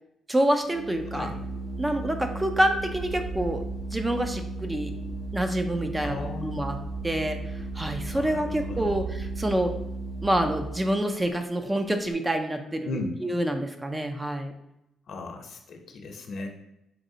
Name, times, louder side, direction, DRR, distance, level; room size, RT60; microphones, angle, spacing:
voice 1, 0.3-1.3 1.8-3.6 3.9-5.0 5.3-6.8 7.0-7.5 7.8-9.7 10.2-14.5, right 1 dB, 15° right, 6 dB, 0.4 m, -27 dB
Organ, 0.6-10.9, right 2 dB, 60° right, 0.8 m, -35 dB
voice 2, 6.0-6.7 8.1-9.0 12.8-13.2 15.1-16.5, left 3 dB, 60° left, 3 dB, 0.7 m, -36 dB
3.9 x 3.2 x 2.7 m, 0.85 s
cardioid pair, 90°, 0 cm